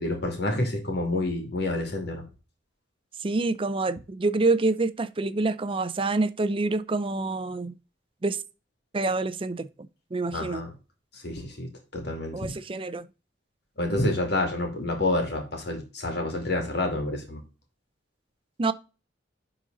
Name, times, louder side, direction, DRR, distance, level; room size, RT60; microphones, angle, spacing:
voice 1, 0.0-2.2 10.3-10.7 11.2-11.7 11.9-12.5 13.8-17.4, left 2 dB, 60° left, 2.6 m, -28 dB
voice 2, 3.2-7.7 8.2-8.4 8.9-9.7 10.1-10.6 12.3-13.1 18.6-18.7, right 3 dB, 30° right, 0.5 m, -27 dB
11.0 x 4.1 x 4.0 m
head